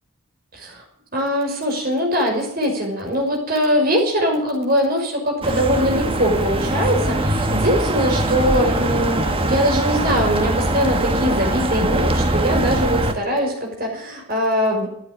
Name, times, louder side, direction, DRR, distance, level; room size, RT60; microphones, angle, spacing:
voice 1, 0.5-0.8 1.1-14.9, equal, 45° right, 1 dB, 5.8 m, -21 dB
sound 1, 5.4-13.1, right 1 dB, 25° right, 1.3 m, -21 dB
14.5 x 10.0 x 8.8 m, 0.74 s
head